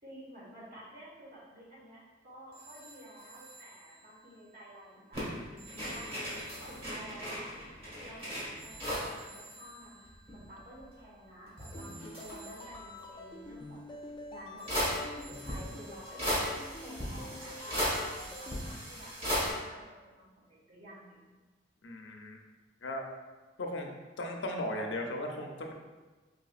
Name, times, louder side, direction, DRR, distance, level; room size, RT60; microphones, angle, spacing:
voice 1, 0.0-6.1 6.7-7.5 8.0-13.8 14.3-21.2, right 1 dB, 50° right, -7 dB, 1.4 m, -51 dB
sound 1, 2.5-19.4, right 2 dB, 65° right, 1.0 m, -56 dB
sound 2, 5.1-9.2 9.5-9.6 9.8-10.9 11.5-12.8 13.9-14.0 14.7-19.5, equal, 30° right, 1.4 m, -36 dB
sound 3, 11.7-18.6, left 1 dB, 25° left, 0.3 m, -47 dB
voice 2, 21.8-22.4 22.8-23.0 23.6-23.9 24.2-25.7, left 1 dB, 80° left, 2 dB, 0.6 m, -36 dB
4.9 x 3.3 x 2.4 m, 1.3 s
head